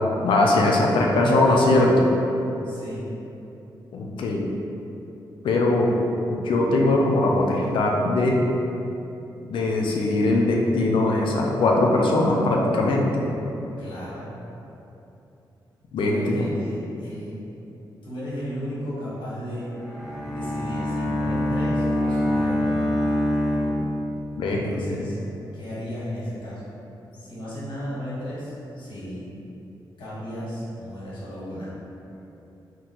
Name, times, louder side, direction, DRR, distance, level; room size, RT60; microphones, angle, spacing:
voice 1, 0.2-2.1 3.9-4.5 5.4-5.9 6.3-8.4 9.4-13.3 15.9-16.5 23.7-23.8 24.4-25.0, left 2 dB, 85° left, -1 dB, 0.5 m, -21 dB
voice 2, 1.1-1.7 2.6-3.0 13.8-14.3 16.0-17.4 18.0-19.7 20.3-22.9 24.5-25.2 25.5-26.6 27.2-29.3 30.0-31.7, equal, 70° left, -9 dB, 1.4 m, -34 dB
Bowed string instrument, 19.7-24.5, left 1 dB, 5° right, 0.6 m, -25 dB
3.6 x 2.9 x 2.9 m, 2.9 s
wide cardioid pair, 110°, 8 cm